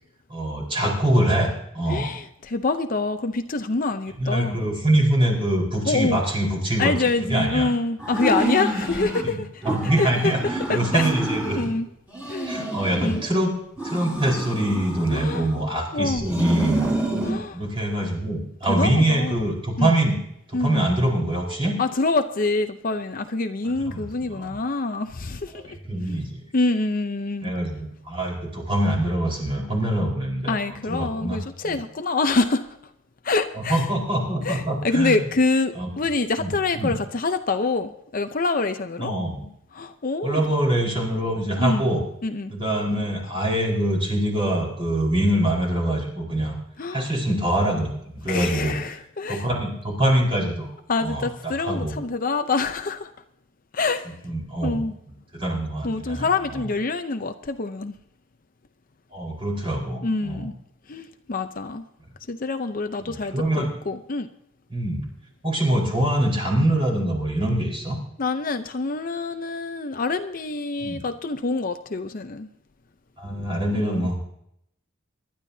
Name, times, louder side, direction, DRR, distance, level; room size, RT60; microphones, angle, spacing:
voice 1, 0.3-2.1 4.2-6.9 7.3-7.7 9.2-9.4 9.6-11.6 12.5-13.5 13.8-16.9 17.5-20.1 20.5-21.7 23.9-24.5 25.6-26.4 27.4-31.4 31.6-31.8 33.7-35.2 35.7-35.9 36.4-36.9 39.0-39.4 40.2-42.0 42.5-46.5 46.9-48.8 49.3-50.7 51.0-51.9 54.2-54.8 55.3-56.6 59.1-60.5 63.1-63.7 64.7-65.0 65.4-68.0 70.8-71.0 73.2-74.2, right 1 dB, 25° right, 4.5 m, -24 dB
voice 2, 1.9-4.6 5.9-6.2 6.8-9.7 10.0-10.3 10.7-11.1 11.5-11.9 12.2-12.5 13.0-13.2 15.1-15.5 15.9-16.3 17.2-17.6 18.7-19.5 19.8-20.0 20.5-20.9 21.8-25.8 26.1-26.2 26.5-27.5 30.5-32.8 33.2-33.9 34.4-39.1 39.7-40.4 41.6-41.9 42.2-42.5 46.8-47.1 48.2-49.5 50.9-53.1 53.7-54.2 54.6-54.9 55.8-57.9 60.0-60.5 60.9-61.8 62.3-64.3 68.2-72.5 73.7-74.1, left 3 dB, 45° left, 0.7 m, -26 dB
sound 1, 8.0-9.2 9.6-11.7 12.1-13.3 13.8-15.7 16.2-17.4, right 1 dB, 5° right, 4.6 m, -28 dB
25.0 x 12.0 x 2.8 m
head